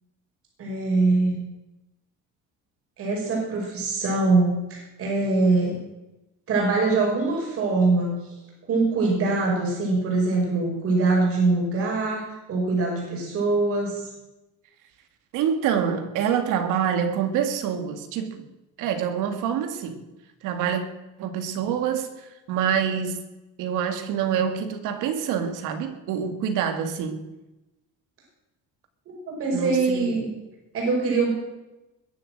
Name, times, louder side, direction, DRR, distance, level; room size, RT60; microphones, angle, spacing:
voice 1, 0.6-1.4 3.0-5.8 6.5-8.1 8.7-14.0 29.1-30.3 30.7-31.3, right 3 dB, 45° right, -2 dB, 5.6 m, -23 dB
voice 2, 15.3-18.5 18.8-20.0 20.4-20.9 21.2-23.2 23.6-27.3 29.5-30.1, right 8 dB, 85° right, 8 dB, 2.2 m, -26 dB
21.0 x 7.7 x 7.8 m, 0.99 s
cardioid pair, 170°, 31 cm